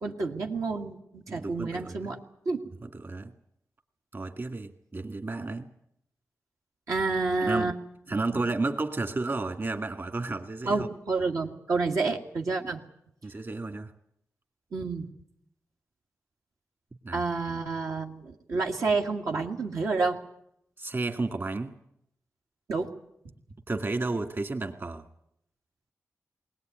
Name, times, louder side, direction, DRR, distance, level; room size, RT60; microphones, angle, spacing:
voice 1, 0.0-2.2 2.5-2.6 6.9-7.7 10.7-12.8 14.7-15.1 17.1-20.2 22.7-22.9, right 3 dB, 85° right, 0 dB, 2.0 m, -29 dB
voice 2, 1.3-2.2 2.8-3.3 4.1-5.7 7.4-7.8 8.1-10.9 12.6-12.7 13.2-13.9 17.0-17.2 17.5-17.6 20.8-21.8 23.7-25.0, right 3 dB, 45° right, 6 dB, 2.2 m, -32 dB
20.5 x 19.0 x 9.3 m, 0.76 s
cardioid pair, 65°, 5 cm